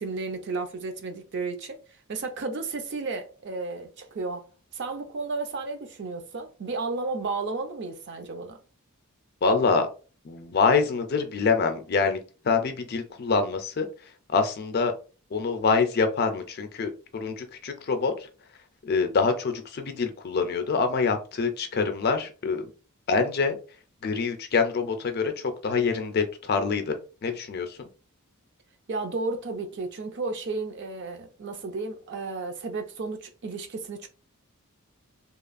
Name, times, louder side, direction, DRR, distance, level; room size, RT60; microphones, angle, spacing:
voice 1, 0.0-1.8 2.1-4.5 4.7-8.6 28.9-34.1, right 3 dB, 50° right, 0.5 m, -33 dB
voice 2, 9.4-9.9 10.2-12.2 12.4-13.9 14.3-14.9 15.3-18.3 18.8-22.6 23.1-23.6 24.0-25.3 25.6-26.9 27.2-27.8, left 4 dB, 45° left, 0.4 m, -25 dB
2.9 x 2.3 x 2.4 m
head